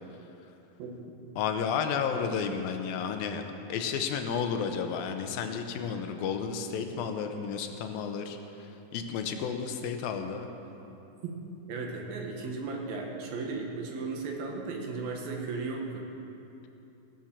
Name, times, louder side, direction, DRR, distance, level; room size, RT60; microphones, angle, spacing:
voice 1, 1.4-3.4 3.7-10.5, left 6 dB, 80° left, 6 dB, 2.6 m, -32 dB
voice 2, 11.7-16.0, right 3 dB, 80° right, 1 dB, 3.2 m, -35 dB
17.5 x 7.3 x 7.4 m, 2.9 s
omnidirectional pair, 4.1 m